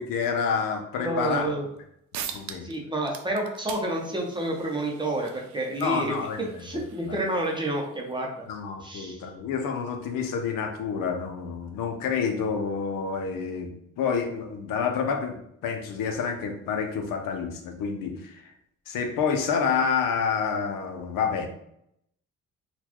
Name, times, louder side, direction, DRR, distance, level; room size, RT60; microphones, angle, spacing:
voice 1, 0.0-1.5 2.1-2.7 5.8-6.8 7.1-7.2 8.5-15.4 15.6-18.5 18.9-21.5, left 6 dB, 80° left, 4 dB, 0.7 m, -28 dB
voice 2, 1.0-1.6 2.6-6.3 6.6-8.5 8.8-9.2, right 1 dB, 15° right, -1 dB, 0.6 m, -29 dB
sound 1, 1.8-1.9 2.1-2.8 3.0-8.2, right 8 dB, 60° right, 0.5 m, -43 dB
4.2 x 2.3 x 2.9 m, 0.73 s
cardioid pair, 135°, 32 cm